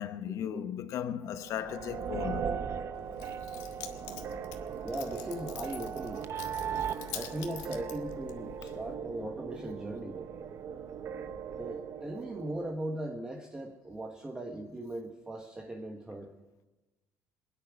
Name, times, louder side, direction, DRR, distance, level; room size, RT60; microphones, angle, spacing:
voice 1, 0.0-2.5, left 9 dB, 60° left, 1.2 m, -36 dB
sound 1, 1.4-12.7, right 7 dB, 50° right, 0.9 m, -38 dB
Keys jangling, 2.9-8.9, left 10 dB, 85° left, 1.6 m, -46 dB
voice 2, 4.8-6.2 7.1-10.2 11.6-16.3, right 1 dB, 15° right, 1.4 m, -39 dB
21.5 x 10.0 x 6.1 m
cardioid pair, 105°, 6 cm